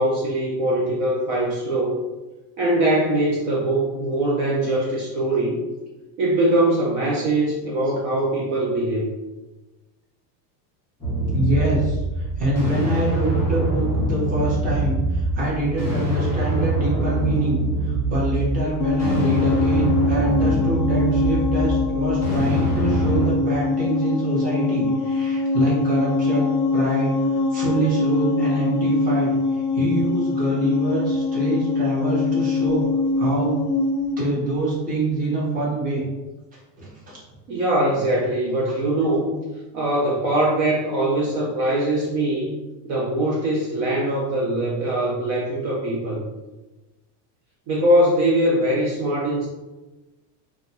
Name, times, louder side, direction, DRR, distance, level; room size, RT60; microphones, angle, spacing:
voice 1, 0.0-2.0 2.6-5.6 6.2-9.1 37.5-39.3 39.7-42.5 42.8-46.3 47.7-49.5, right 1 dB, 40° right, -4 dB, 0.5 m, -22 dB
sound 1, 11.0-23.3, right 1 dB, 5° left, 1.3 m, -24 dB
voice 2, 11.3-32.8 33.2-33.6 34.2-36.0 36.8-37.2, right 2 dB, 15° right, -7 dB, 0.9 m, -25 dB
sound 2, 18.8-34.2, left 4 dB, 65° left, 0.5 m, -23 dB
2.5 x 2.3 x 4.0 m, 1.1 s
cardioid pair, 160°, 48 cm